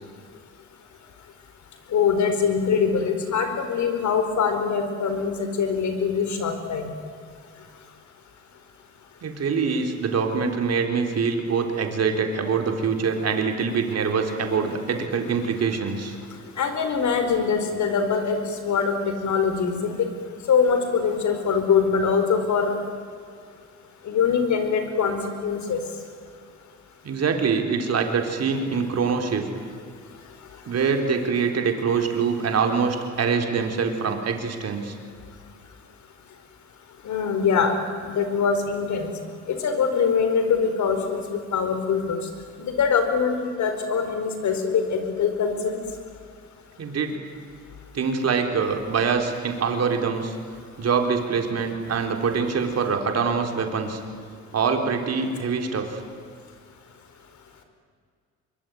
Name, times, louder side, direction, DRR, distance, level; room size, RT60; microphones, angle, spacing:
voice 1, 1.9-6.9 16.6-18.9 19.2-20.1 20.5-22.8 24.1-25.8 37.0-37.7 38.0-39.1 39.5-42.2 42.6-45.8, left 6 dB, 70° left, 7 dB, 4.7 m, -23 dB
voice 2, 9.2-16.2 27.0-29.5 30.7-35.0 46.8-47.2 47.9-50.4 50.8-54.0 54.5-56.0, right 5 dB, 55° right, 4 dB, 4.0 m, -24 dB
24.5 x 23.0 x 9.5 m, 2.1 s
cardioid pair, 90°, 30 cm